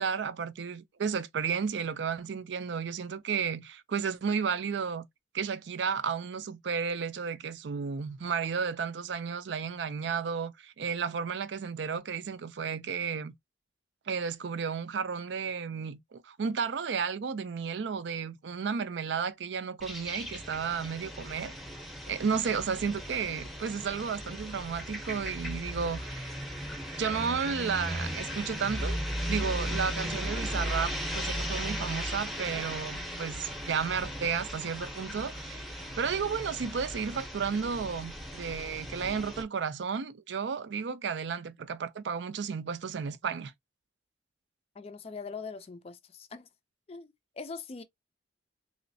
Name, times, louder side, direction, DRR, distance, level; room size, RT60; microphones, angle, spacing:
voice 1, 0.0-5.1 5.3-13.3 14.1-21.5 22.1-26.4 27.0-29.0 29.3-35.7 36.0-43.5, right 6 dB, 70° right, 0.4 m, -33 dB
sound 1, 19.8-39.4, equal, ahead, 0.7 m, -37 dB
voice 2, 44.8-46.5 46.9-47.8, left 4 dB, 30° left, 0.4 m, -42 dB
3.1 x 3.0 x 2.6 m
head